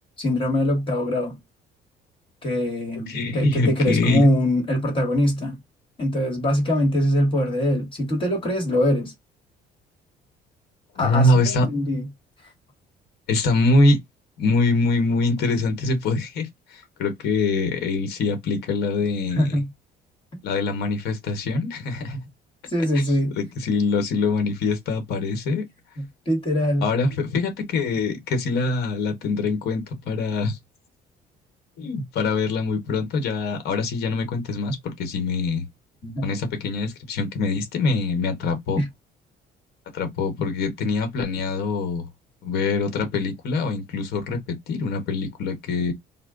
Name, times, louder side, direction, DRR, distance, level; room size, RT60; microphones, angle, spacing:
voice 1, 0.2-1.4 2.4-5.6 6.0-9.1 11.0-12.1 19.3-19.7 22.7-23.4 26.0-26.9 36.0-36.3 38.8-38.9, left 1 dB, 30° left, 1.3 m, -23 dB
voice 2, 3.1-4.3 11.0-11.7 13.3-14.0 14.4-19.6 20.4-22.2 22.9-23.0 23.4-25.6 26.8-30.6 31.8-35.6 36.2-38.8 39.9-42.0 42.4-45.9, left 3 dB, 70° left, 1.0 m, -24 dB
2.2 x 2.1 x 3.6 m
cardioid pair, 110°, 17 cm